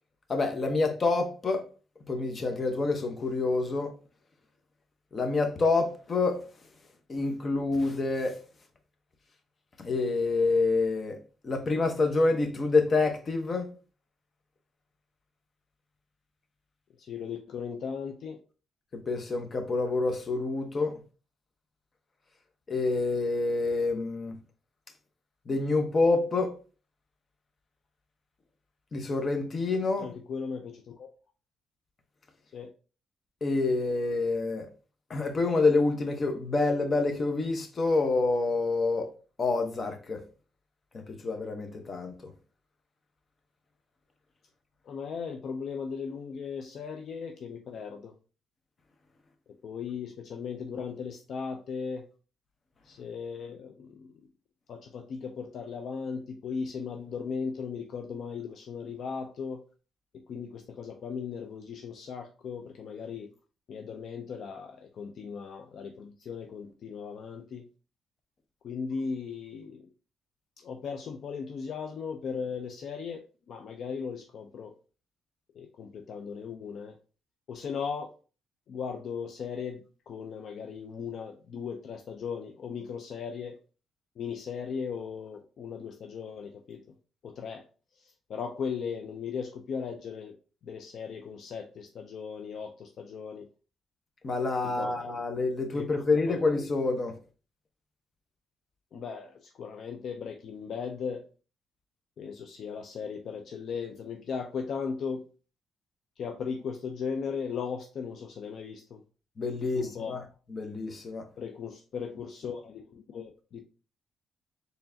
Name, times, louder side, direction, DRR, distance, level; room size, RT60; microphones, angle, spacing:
voice 1, 0.3-1.7 2.1-3.9 5.1-6.5 7.1-8.4 9.8-11.2 11.4-13.7 18.9-21.0 22.7-24.4 25.5-26.6 28.9-30.2 33.4-34.7 35.1-39.1 39.4-40.2 40.9-42.3 94.2-97.2 109.4-110.2 110.5-111.2, left 3 dB, 40° left, 0.8 m, -27 dB
voice 2, 17.0-18.4 30.0-31.1 32.5-32.7 44.9-48.1 49.6-52.1 52.8-54.1 54.7-59.6 60.3-63.3 63.7-67.7 68.6-69.9 70.6-74.7 75.6-77.0 77.5-78.1 78.7-83.6 84.2-86.8 87.2-87.6 88.0-90.3 90.6-93.5 94.6-95.0 95.7-96.0 96.3-96.4 98.9-101.2 102.2-105.2 106.2-109.0 109.8-110.2 111.4-113.6, left 6 dB, 65° left, 0.4 m, -37 dB
4.5 x 3.3 x 2.6 m
cardioid pair, 90°, 0 cm